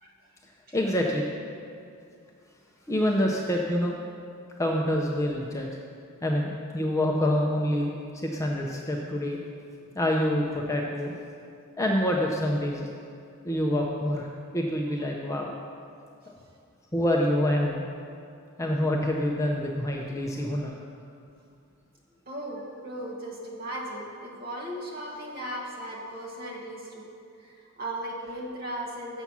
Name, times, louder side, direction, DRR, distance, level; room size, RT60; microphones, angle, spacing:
voice 1, 0.7-1.3 2.9-4.0 4.6-5.7 6.2-7.9 8.2-9.4 9.9-11.1 11.8-12.9 13.4-14.3 14.5-15.5 16.9-17.9 18.6-20.7, left 1 dB, 15° left, -1 dB, 0.5 m, -26 dB
voice 2, 22.3-27.1 27.4-29.2, right 1 dB, 40° right, -2 dB, 1.4 m, -37 dB
7.1 x 6.9 x 5.9 m, 2.4 s
head